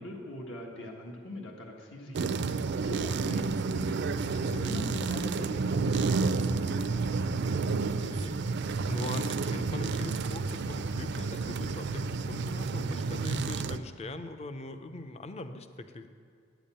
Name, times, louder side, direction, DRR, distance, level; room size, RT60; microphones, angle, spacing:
voice 1, 0.0-3.9 4.6-7.5, left 1 dB, 70° left, 0 dB, 1.5 m, -42 dB
sound 1, 2.1-13.8, right 4 dB, 60° right, 0.4 m, -30 dB
voice 2, 4.3-4.7 7.8-16.1, left 2 dB, 35° left, 9 dB, 0.5 m, -41 dB
9.2 x 7.1 x 8.8 m, 2.3 s
head